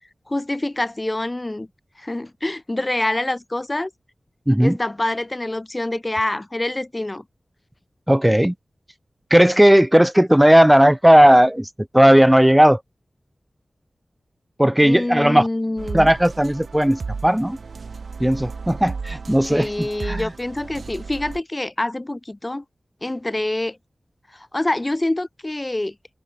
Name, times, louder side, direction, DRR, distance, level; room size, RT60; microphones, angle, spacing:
voice 1, 0.3-1.7 2.0-3.9 4.6-7.2 14.8-16.1 19.5-22.6 23.0-23.8 24.3-25.9, left 1 dB, 25° left, 2.3 m, -26 dB
voice 2, 4.5-4.8 8.1-8.5 9.3-12.8 14.6-15.5 15.9-17.6 18.2-20.3, equal, 5° right, 1.3 m, -15 dB
sound 1, 15.8-21.4, right 4 dB, 90° right, 2.3 m, -34 dB
wide cardioid pair, 85°, 0 cm